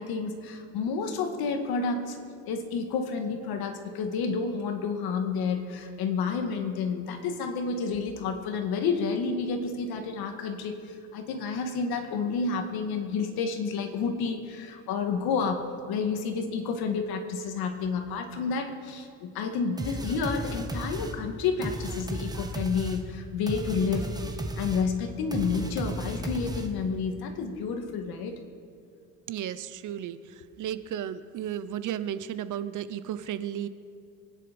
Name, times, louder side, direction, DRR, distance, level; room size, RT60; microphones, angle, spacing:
voice 1, 0.0-2.2 2.5-24.1 24.6-28.4, left 5 dB, 75° left, 5 dB, 2.0 m, -30 dB
sound 1, 19.8-27.0, right 1 dB, 10° right, 1.2 m, -35 dB
voice 2, 29.3-33.7, right 10 dB, 55° right, 14 dB, 0.8 m, -34 dB
24.5 x 10.5 x 5.3 m, 2.3 s
cardioid pair, 120°, 37 cm